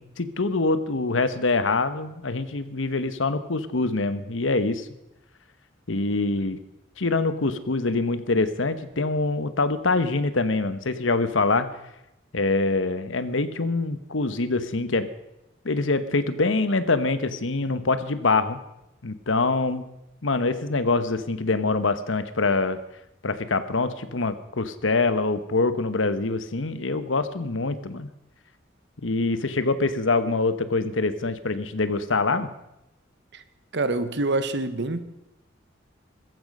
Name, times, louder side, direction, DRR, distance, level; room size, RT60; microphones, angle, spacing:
voice 1, 0.0-4.9 5.9-6.6 7.0-11.7 12.3-15.1 15.6-18.6 19.0-19.8 20.2-22.8 23.2-28.1 29.0-32.5, left 3 dB, 85° left, 1.1 m, -24 dB
voice 2, 33.7-35.0, right 2 dB, 65° right, 1.2 m, -26 dB
16.0 x 14.0 x 5.4 m
head